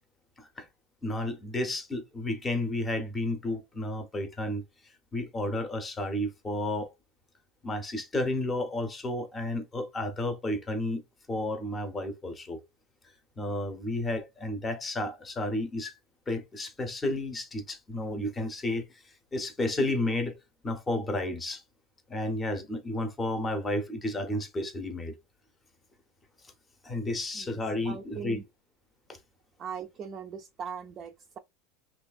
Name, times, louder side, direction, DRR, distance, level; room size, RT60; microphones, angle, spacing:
voice 1, 1.0-4.6 5.1-6.9 7.6-11.0 11.3-12.6 13.4-15.9 16.3-20.4 20.6-21.6 22.1-25.2 26.8-28.4 29.1-29.2, left 1 dB, 15° left, 0.7 m, -32 dB
voice 2, 27.8-28.4 29.6-31.4, right 7 dB, 35° right, 0.3 m, -40 dB
3.1 x 2.3 x 2.3 m
supercardioid pair, 135°, 0 cm